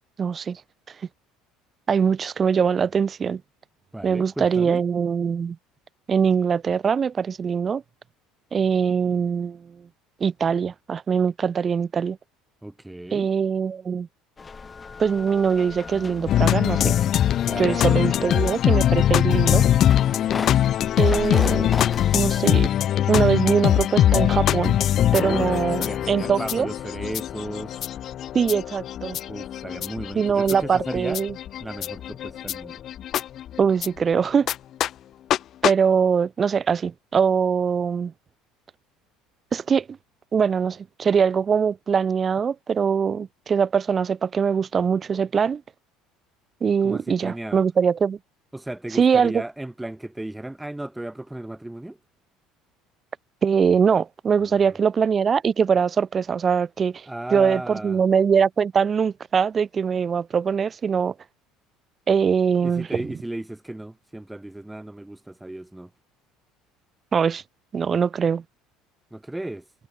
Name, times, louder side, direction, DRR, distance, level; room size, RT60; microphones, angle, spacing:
voice 1, 0.2-0.6 0.9-1.0 1.9-3.4 4.0-5.6 6.1-7.8 8.5-9.9 10.2-12.2 13.1-14.1 15.0-17.0 17.6-19.6 21.0-21.8 22.1-22.8 23.1-24.8 25.1-26.7 28.3-29.2 30.2-31.3 33.6-34.5 35.6-38.1 39.5-40.0 40.3-45.6 46.6-48.2 48.9-49.4 53.4-61.1 62.1-62.9 67.1-67.4 67.7-68.4, right 6 dB, 30° right, 2.6 m, -22 dB
voice 2, 3.9-4.8 12.6-13.3 17.4-18.8 25.1-27.8 29.3-31.2 31.6-32.8 46.8-47.6 48.5-52.0 54.4-54.8 57.0-58.0 62.6-65.9 69.1-69.7, right 1 dB, 5° right, 3.1 m, -35 dB
sound 1, 14.4-22.4, left 4 dB, 25° left, 7.2 m, -36 dB
sound 2, 16.3-33.9 34.5-34.6 34.8-34.9 35.3-35.4 35.6-35.7, left 11 dB, 50° left, 2.5 m, -22 dB
supercardioid pair, 110°, 0 cm